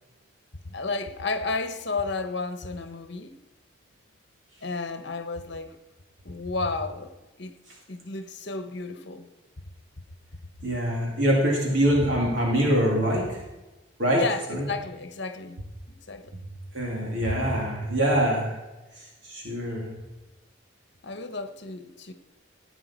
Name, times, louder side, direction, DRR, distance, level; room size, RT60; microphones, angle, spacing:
voice 1, 0.6-3.4 4.6-5.8 6.2-7.6 7.9-9.3 14.2-15.6 15.9-16.4 21.0-22.1, left 3 dB, 55° left, 1.1 m, -32 dB
voice 2, 10.6-13.4 14.0-14.2 14.5-14.7 16.7-18.5 19.0-19.9, equal, 65° right, 3.0 m, -24 dB
15.5 x 8.9 x 4.5 m
head